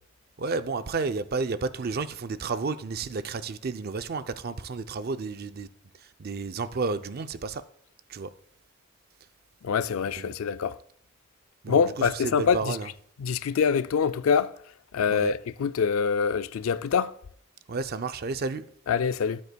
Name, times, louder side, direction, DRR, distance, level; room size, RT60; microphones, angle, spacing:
voice 1, 0.4-5.7 6.2-7.6 8.1-8.3 10.2-10.3 11.6-12.9 15.1-15.3 17.7-18.7, right 4 dB, 45° right, 0.4 m, -31 dB
voice 2, 9.6-10.8 11.7-12.8 13.2-14.5 14.9-17.2 18.9-19.4, left 6 dB, 80° left, 0.4 m, -25 dB
12.5 x 9.5 x 2.3 m
head